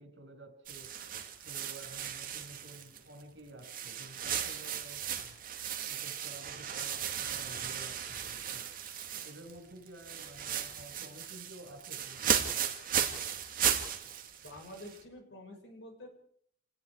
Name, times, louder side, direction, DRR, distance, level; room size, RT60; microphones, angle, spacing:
voice 1, 0.0-5.4 5.8-12.6, right 1 dB, 70° right, 6 dB, 6.0 m, -52 dB
sound 1, 0.7-3.2 3.6-9.6 9.9-15.0, right 8 dB, 45° right, 2.6 m, -36 dB
voice 2, 14.4-16.1, left 1 dB, 65° left, 3 dB, 6.1 m, -48 dB
28.0 x 19.5 x 4.9 m, 0.65 s
head